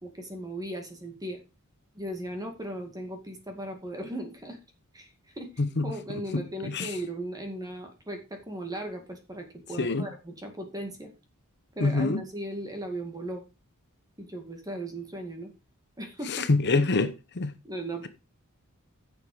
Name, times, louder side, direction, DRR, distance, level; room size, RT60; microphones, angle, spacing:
voice 1, 0.0-1.4 1.9-4.6 4.9-5.5 5.8-11.1 11.8-13.4 14.2-15.5 16.0-16.5 17.6-18.1, right 1 dB, 15° right, 2.0 m, -37 dB
voice 2, 5.6-5.9 6.3-7.0 9.8-10.1 11.8-12.2 16.3-17.5, left 3 dB, 50° left, 0.8 m, -26 dB
10.5 x 7.2 x 4.7 m
head